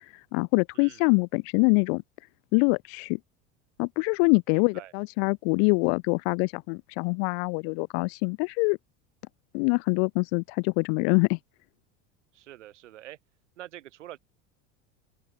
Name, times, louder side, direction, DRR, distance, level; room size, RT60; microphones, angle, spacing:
voice 1, 0.3-2.0 2.5-3.2 3.8-8.8 9.5-11.4, left 40 dB or more, 60° left, 0.6 m, -24 dB
voice 2, 4.5-4.9 12.3-13.2 13.6-14.2, right 14 dB, 80° right, 2.1 m, -45 dB
open air
hypercardioid pair, 85°, 36 cm